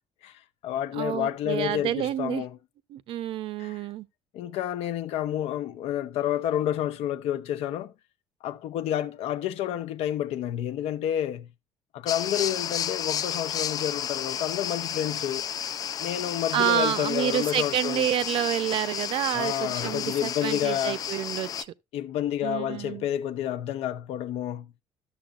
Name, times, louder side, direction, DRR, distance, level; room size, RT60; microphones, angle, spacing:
voice 1, 0.2-2.6 3.6-3.8 4.3-7.9 8.4-11.5 11.9-15.4 16.0-18.0 19.3-21.0 21.9-24.7, left 11 dB, 75° left, 0.8 m, -29 dB
voice 2, 0.9-2.4 2.9-4.1 16.5-21.7 22.4-23.1, right 11 dB, 55° right, 0.6 m, -28 dB
sound 1, 12.1-21.6, left 8 dB, 35° left, 0.4 m, -32 dB
13.0 x 7.0 x 2.5 m
cardioid pair, 165°, 11 cm